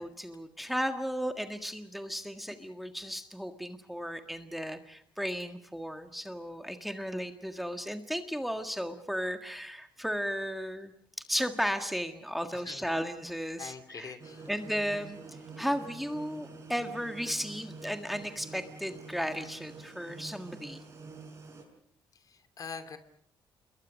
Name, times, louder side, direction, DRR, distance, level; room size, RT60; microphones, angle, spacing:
voice 1, 0.0-10.9 11.3-14.2 14.5-15.2 15.6-20.8, equal, ahead, 7 dB, 1.7 m, -35 dB
voice 2, 12.5-12.8 13.6-14.5 22.3-23.0, left 5 dB, 45° left, 10 dB, 2.7 m, -44 dB
sound 1, 14.2-21.6, right 4 dB, 35° right, 7.3 m, -47 dB
27.5 x 22.0 x 6.4 m, 0.64 s
cardioid pair, 100°, 9 cm